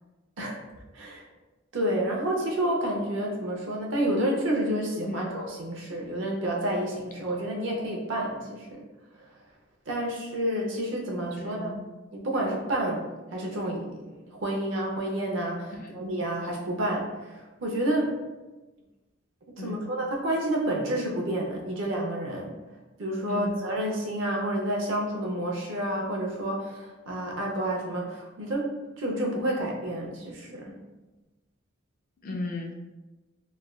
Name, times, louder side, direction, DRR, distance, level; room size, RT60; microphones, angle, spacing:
voice 1, 1.7-8.8 9.9-11.8 12.1-13.0 13.3-14.0 14.3-18.1 19.6-22.5 23.0-28.7 29.0-30.8, right 1 dB, 70° right, -1 dB, 0.5 m, -29 dB
voice 2, 11.4-11.8 15.8-16.0 19.6-19.8 23.3-23.5 32.2-32.8, left 2 dB, 45° left, 1 dB, 0.4 m, -35 dB
3.1 x 2.1 x 2.3 m, 1.1 s
head